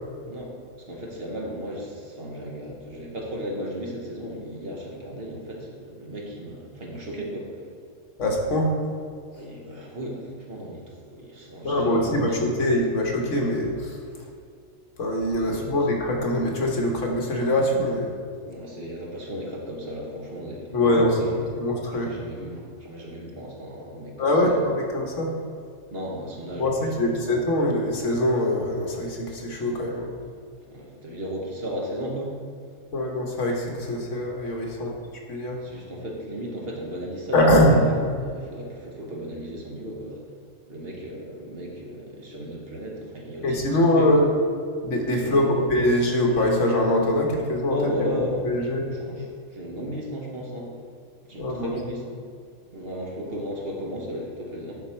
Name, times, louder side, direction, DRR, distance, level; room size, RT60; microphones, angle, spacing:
voice 1, 0.9-7.5 9.3-12.4 15.4-15.7 18.5-21.4 21.9-24.7 25.9-27.2 30.7-32.4 35.6-37.6 37.9-40.2 40.7-44.2 45.2-45.6 47.7-48.5 48.9-49.3 49.5-50.7 51.2-52.2 52.7-54.8, equal, 50° right, -2 dB, 1.3 m, -35 dB
voice 2, 8.2-8.7 11.6-12.3 12.6-14.0 15.0-18.1 20.7-22.1 24.2-25.3 26.6-30.1 32.9-35.0 35.3-35.6 37.3-37.9 43.4-44.3 44.8-47.8 48.4-48.9 51.4-51.7, left 1 dB, 70° left, 0 dB, 1.5 m, -23 dB
11.0 x 4.1 x 4.4 m, 2.1 s
omnidirectional pair, 1.4 m